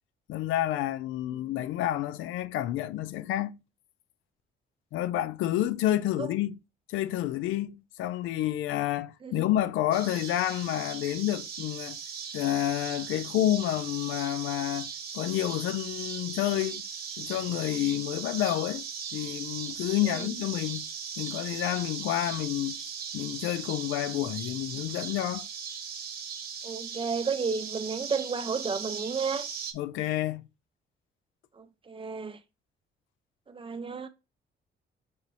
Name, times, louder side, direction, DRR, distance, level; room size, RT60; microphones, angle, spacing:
voice 1, 0.3-3.6 4.9-6.6 6.9-12.0 12.3-14.9 15.1-16.8 17.2-18.8 19.1-20.9 21.2-22.8 23.1-25.5 29.7-30.4, left 13 dB, 90° left, 0.4 m, -29 dB
sound 1, 9.9-29.7, right 6 dB, 50° right, 1.0 m, -39 dB
voice 2, 26.6-29.5 31.6-32.4 33.5-34.1, right 5 dB, 25° right, 0.7 m, -32 dB
6.3 x 3.0 x 2.8 m
cardioid pair, 90°, 20 cm